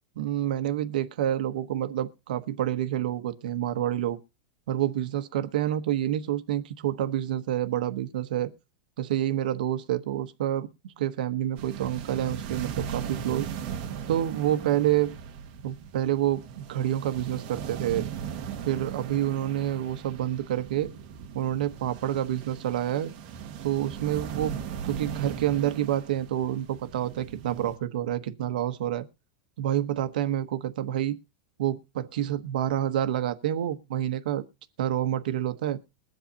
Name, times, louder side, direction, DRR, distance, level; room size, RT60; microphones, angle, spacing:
voice 1, 0.2-4.2 4.7-8.5 9.0-10.7 11.0-13.5 14.1-15.1 15.6-18.1 18.6-20.9 21.3-23.1 23.6-24.6 24.8-29.1 29.6-31.2 31.6-34.4 34.8-35.8, right 11 dB, 70° right, 1.0 m, -28 dB
sound 1, 11.6-27.8, right 8 dB, 35° right, 1.5 m, -38 dB
21.5 x 7.8 x 2.8 m
supercardioid pair, 170°, 5 cm